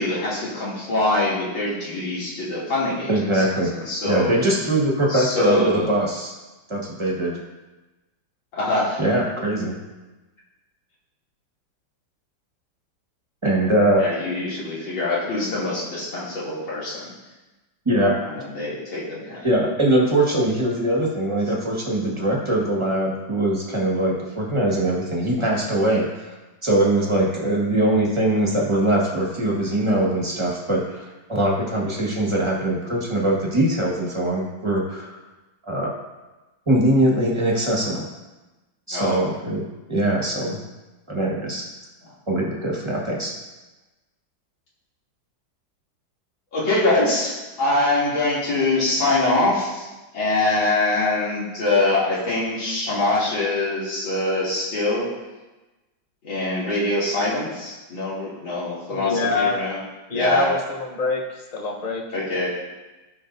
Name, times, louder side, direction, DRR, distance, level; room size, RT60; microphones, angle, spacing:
voice 1, 0.0-3.4 3.7-4.3 5.1-5.9 8.5-9.0 14.0-17.1 18.3-19.4 38.9-39.2 46.5-49.9 50.1-55.1 56.2-59.8 60.1-60.5 62.1-62.5, left 2 dB, 75° left, -9 dB, 3.7 m, -23 dB
voice 2, 3.1-3.7 4.0-6.3 6.7-7.4 9.0-9.8 13.4-14.0 17.8-18.1 19.4-26.3 26.6-35.2 35.6-35.9 36.7-38.1 38.9-39.6 39.9-40.6 41.1-41.6 42.3-43.3, right 1 dB, 15° right, -3 dB, 1.4 m, -22 dB
voice 3, 58.9-59.5 60.1-62.0, left 3 dB, 35° left, 0 dB, 0.7 m, -25 dB
14.5 x 5.7 x 2.7 m, 1.1 s
omnidirectional pair, 2.2 m